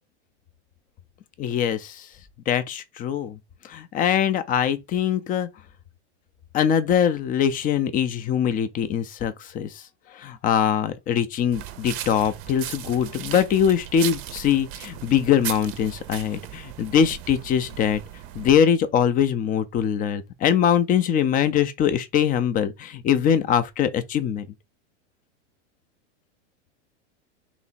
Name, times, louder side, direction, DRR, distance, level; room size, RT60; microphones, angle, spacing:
voice 1, 1.4-2.1 2.5-3.4 3.6-5.5 6.5-9.8 10.1-18.0 18.3-24.5, left 8 dB, 25° left, 0.5 m, -22 dB
sound 1, 11.5-18.6, right 12 dB, 40° right, 0.6 m, -37 dB
3.3 x 3.0 x 4.1 m
supercardioid pair, 130°, 36 cm